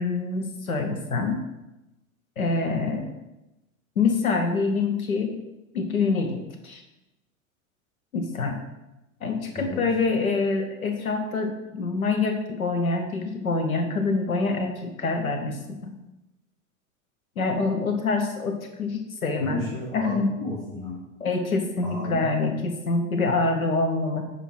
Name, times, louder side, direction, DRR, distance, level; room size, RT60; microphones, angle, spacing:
voice 1, 0.0-1.5 2.4-3.1 4.0-5.3 5.7-6.8 8.1-8.6 9.2-16.0 17.4-19.6 19.9-20.3 21.2-24.2, left 3 dB, 80° left, 5 dB, 1.0 m, -26 dB
voice 2, 19.4-21.0 21.8-22.2, left 1 dB, 15° left, -10 dB, 3.2 m, -33 dB
10.0 x 4.5 x 4.6 m, 0.97 s
figure-of-eight pair, 85°, 41 cm